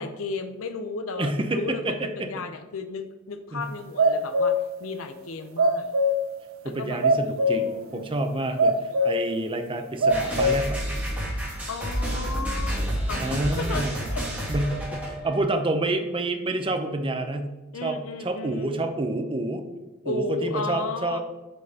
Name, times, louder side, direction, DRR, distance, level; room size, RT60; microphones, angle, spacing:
voice 1, 0.0-5.9 6.6-7.0 7.4-8.1 8.4-8.9 11.7-12.8 13.1-13.8 14.1-14.5 17.7-18.7 20.0-21.2, left 3 dB, 75° left, 8 dB, 0.7 m, -34 dB
voice 2, 1.2-2.3 3.5-3.6 6.6-10.8 13.1-14.1 14.5-17.5 17.8-19.6 20.0-21.2, right 2 dB, 25° right, 6 dB, 0.6 m, -28 dB
sound 1, 4.0-4.7 5.6-6.3 7.0-7.7 8.2-8.3 8.6-9.3 9.7-10.6, equal, 70° right, 0.5 m, -21 dB
sound 2, 10.1-15.4, equal, 10° right, 2.1 m, -29 dB
7.7 x 5.3 x 2.8 m, 1.2 s
head